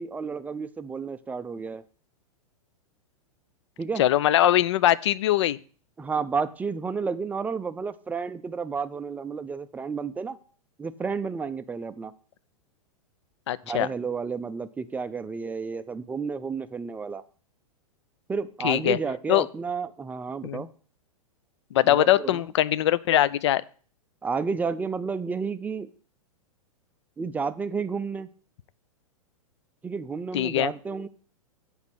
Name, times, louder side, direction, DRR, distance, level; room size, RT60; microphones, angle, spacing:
voice 1, 0.0-1.8 3.8-4.0 6.0-10.4 10.8-12.1 13.6-17.2 18.3-20.7 21.8-22.5 24.2-25.9 27.2-28.3 29.8-31.1, right 5 dB, 10° right, 13 dB, 0.4 m, -31 dB
voice 2, 4.0-5.6 13.5-13.9 18.6-19.0 19.3-19.5 20.4-20.6 21.7-23.6 30.3-30.7, left 13 dB, 50° left, 18 dB, 0.5 m, -22 dB
8.1 x 5.6 x 7.7 m, 0.43 s
figure-of-eight pair, 100°, 18 cm